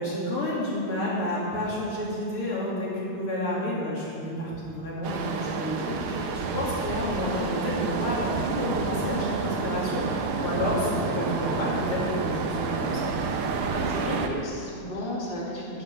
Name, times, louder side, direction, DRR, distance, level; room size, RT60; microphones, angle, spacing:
voice 1, 0.0-13.1, left 1 dB, 85° left, -5 dB, 3.6 m, -30 dB
sound 1, 5.0-14.3, right 5 dB, 80° right, 1.8 m, -29 dB
voice 2, 13.6-15.8, left 1 dB, 30° left, -4 dB, 2.4 m, -34 dB
10.5 x 10.0 x 7.1 m, 2.7 s
omnidirectional pair, 2.3 m